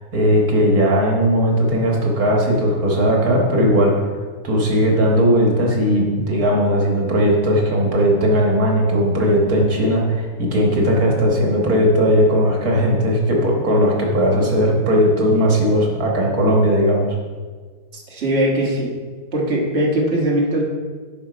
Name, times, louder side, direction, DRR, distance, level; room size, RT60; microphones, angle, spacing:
voice 1, 0.1-3.9 4.4-17.1 17.9-18.0, equal, 75° right, -1 dB, 1.9 m, -17 dB
voice 2, 18.1-18.9 19.3-20.6, right 1 dB, 45° right, -3 dB, 1.7 m, -20 dB
10.0 x 5.5 x 5.0 m, 1.5 s
omnidirectional pair, 1.6 m